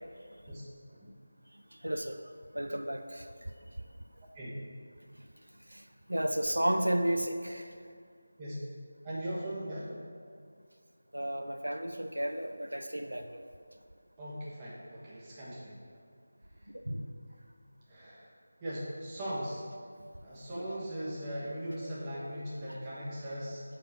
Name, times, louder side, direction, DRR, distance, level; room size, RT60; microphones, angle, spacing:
voice 1, 1.8-2.2 2.5-3.2 5.7-5.8 6.1-7.7 11.1-13.4 16.9-17.1 20.5-20.6, right 1 dB, 90° right, 6 dB, 0.4 m, -32 dB
voice 2, 9.0-9.9 14.2-15.8 17.9-18.3 18.6-19.6 20.2-23.6, equal, 20° right, -7 dB, 1.3 m, -39 dB
5.6 x 5.0 x 5.5 m, 2.3 s
figure-of-eight pair, 165°, 0 cm